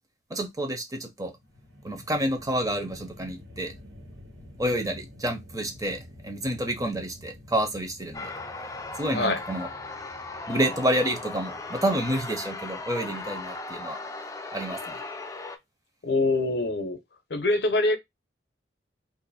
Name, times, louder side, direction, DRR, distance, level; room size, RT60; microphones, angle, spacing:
voice 1, 0.3-1.3 1.8-3.7 4.6-8.3 9.0-9.7 10.5-14.0 14.5-15.0, right 1 dB, 20° right, 0.7 m, -29 dB
sound 1, 1.3-13.6, left 1 dB, 75° right, 1.4 m, -49 dB
sound 2, 8.1-15.6, left 3 dB, 15° left, 0.4 m, -37 dB
voice 2, 9.1-9.4 16.0-17.0 17.3-18.0, left 2 dB, 60° left, 0.7 m, -24 dB
2.6 x 2.5 x 4.0 m
head